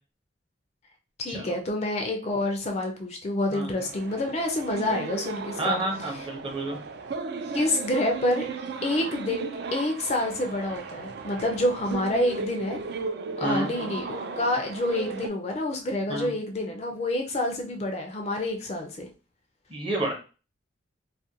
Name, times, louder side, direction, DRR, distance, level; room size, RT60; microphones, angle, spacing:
voice 1, 1.2-5.8 7.5-8.5 8.8-12.8 13.4-19.1, left 1 dB, 35° left, 3 dB, 0.4 m, -28 dB
sound 1, 3.8-15.3, right 4 dB, 60° right, 0.3 m, -36 dB
voice 2, 5.6-6.8 13.4-13.9 16.1-16.3 19.7-20.1, right 2 dB, 30° right, 1 dB, 0.6 m, -30 dB
2.4 x 2.1 x 2.7 m, 0.34 s
head